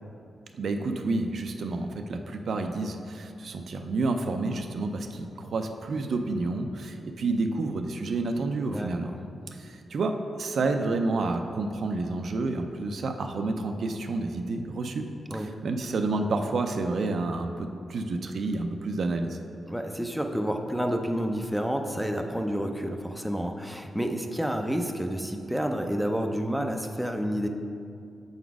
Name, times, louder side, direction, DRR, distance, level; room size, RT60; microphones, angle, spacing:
voice 1, 0.5-9.1 9.5-15.0 15.3-19.4, right 3 dB, 65° right, 5 dB, 0.4 m, -29 dB
voice 2, 8.7-9.2 15.3-15.5 19.7-27.5, equal, ahead, 3 dB, 0.5 m, -29 dB
7.0 x 4.0 x 4.7 m, 2.4 s
cardioid pair, 95°, 0 cm